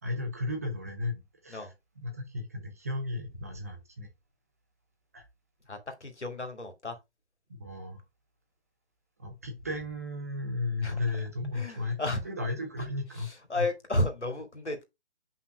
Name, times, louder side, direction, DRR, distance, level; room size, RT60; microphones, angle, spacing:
voice 1, 0.0-4.1 5.1-5.2 7.6-8.0 9.2-12.0 12.2-13.7, left 2 dB, 15° right, 0.6 m, -35 dB
voice 2, 5.7-7.0 10.8-10.9 11.5-12.3 12.8-12.9 13.2-14.8, left 1 dB, 85° left, 2.4 m, -33 dB
7.8 x 5.5 x 2.3 m
figure-of-eight pair, 145°, 34 cm